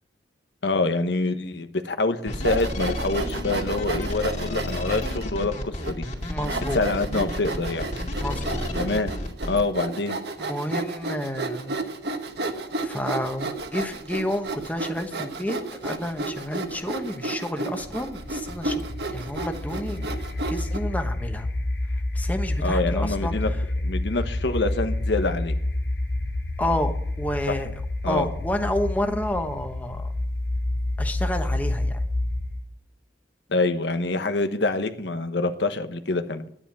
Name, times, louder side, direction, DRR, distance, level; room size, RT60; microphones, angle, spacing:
voice 1, 0.6-6.0 6.7-7.9 8.8-9.1 9.5-10.2 22.6-23.5 23.8-25.5 27.5-27.6 28.0-28.3 33.5-36.4, left 2 dB, 85° left, 8 dB, 1.2 m, -26 dB
sound 1, 2.3-9.6, left 1 dB, 40° left, 2.6 m, -31 dB
Sawing, 2.4-5.2 5.8-5.9 6.4-20.8, right 2 dB, 70° right, 1.4 m, -32 dB
voice 2, 6.3-6.8 8.2-8.7 10.4-11.8 12.8-20.1 20.5-21.5 22.1-23.6 26.6-30.1 31.0-32.0, left 1 dB, 10° left, 5 dB, 1.2 m, -30 dB
sound 2, 17.8-32.7, left 1 dB, 65° left, 1.4 m, -29 dB
11.0 x 10.0 x 6.1 m, 0.70 s
head